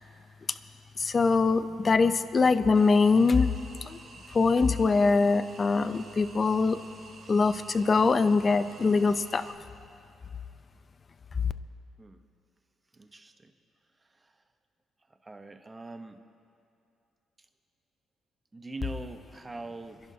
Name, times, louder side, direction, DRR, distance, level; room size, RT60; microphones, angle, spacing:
voice 1, 1.0-3.5 3.8-4.0 4.3-6.8 7.3-9.4, left 4 dB, 35° left, 12 dB, 0.5 m, -23 dB
sound 1, 2.7-9.5, right 3 dB, 55° right, 1.7 m, -51 dB
voice 2, 12.9-13.5 14.2-14.3 15.2-16.2 18.5-20.0, right 2 dB, 20° right, 7 dB, 0.9 m, -42 dB
29.5 x 11.0 x 2.8 m, 2.6 s
cardioid pair, 90°, 0 cm